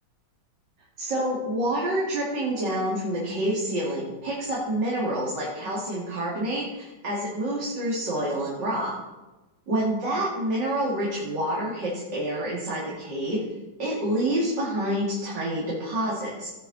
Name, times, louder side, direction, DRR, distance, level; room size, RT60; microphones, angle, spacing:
voice 1, 1.0-8.9 9.7-13.4 13.8-16.5, right 1 dB, 55° right, -5 dB, 3.3 m, -28 dB
17.5 x 7.2 x 4.3 m, 1.1 s
omnidirectional pair, 2.3 m